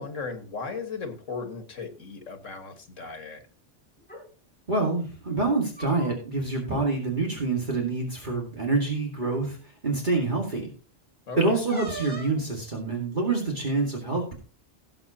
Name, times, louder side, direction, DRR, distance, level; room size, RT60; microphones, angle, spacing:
voice 1, 0.0-3.4 11.3-11.6, left 4 dB, 85° left, 7 dB, 2.0 m, -36 dB
sound 1, 4.0-4.2 5.5-6.4 6.7-6.8 7.2-7.5 8.4-8.5 9.1-9.4 11.7-12.4, equal, 5° left, 3.6 m, -40 dB
voice 2, 4.7-9.6 9.8-10.7 11.4-14.3, right 3 dB, 40° right, 0 dB, 2.3 m, -26 dB
17.0 x 7.7 x 2.9 m, 0.38 s
omnidirectional pair, 1.3 m